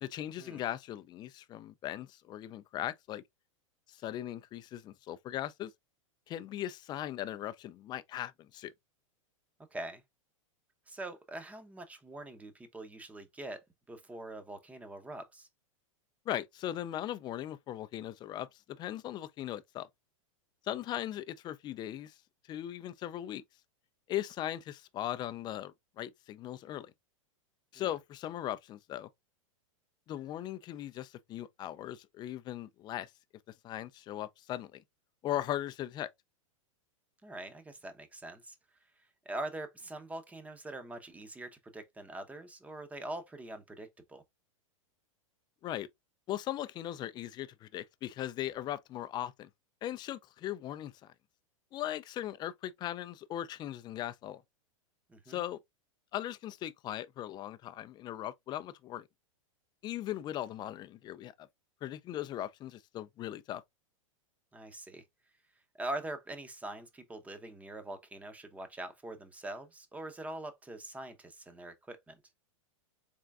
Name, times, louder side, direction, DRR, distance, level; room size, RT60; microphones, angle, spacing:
voice 1, 0.0-3.2 3.9-5.7 6.3-8.7 16.3-19.9 20.6-22.1 22.5-23.4 24.1-26.9 27.7-29.1 30.1-33.1 33.6-34.8 35.2-36.1 45.6-45.9 46.3-49.5 49.8-50.9 51.7-54.4 55.3-55.6 56.1-59.1 59.8-61.5 61.8-63.6, left 12 dB, 25° left, 0.4 m, -38 dB
voice 2, 9.7-10.0 10.9-13.6 13.9-15.5 27.8-27.9 37.2-38.6 39.3-44.2 55.1-55.4 64.5-65.0 65.8-72.2, right 1 dB, 10° right, 0.7 m, -43 dB
3.7 x 3.4 x 2.3 m
hypercardioid pair, 125°, 17 cm